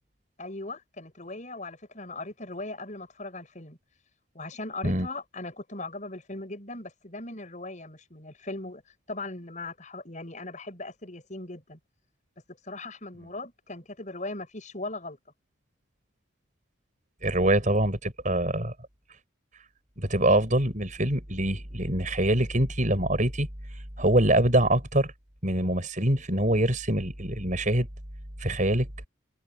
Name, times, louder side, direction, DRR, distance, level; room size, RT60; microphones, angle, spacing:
voice 1, 0.4-3.8 4.3-8.8 9.1-11.8 12.6-15.2, left 2 dB, 35° left, 6.7 m, -39 dB
voice 2, 17.2-18.7 20.0-25.1 25.4-27.9 28.4-28.9, right 1 dB, 40° right, 5.9 m, -24 dB
head